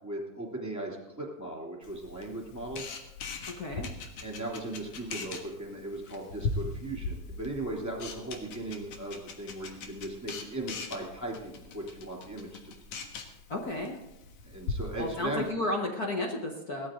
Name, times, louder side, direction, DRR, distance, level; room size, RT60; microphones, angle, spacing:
voice 1, 0.0-2.8 4.2-12.7 14.4-15.5, right 2 dB, 5° right, -2 dB, 2.7 m, -38 dB
Camera, 1.8-15.5, left 3 dB, 70° left, 2.7 m, -40 dB
voice 2, 3.6-3.9 13.5-14.0 14.9-16.9, left 2 dB, 50° left, 0 dB, 1.2 m, -32 dB
18.0 x 13.5 x 3.9 m, 0.93 s
omnidirectional pair, 3.5 m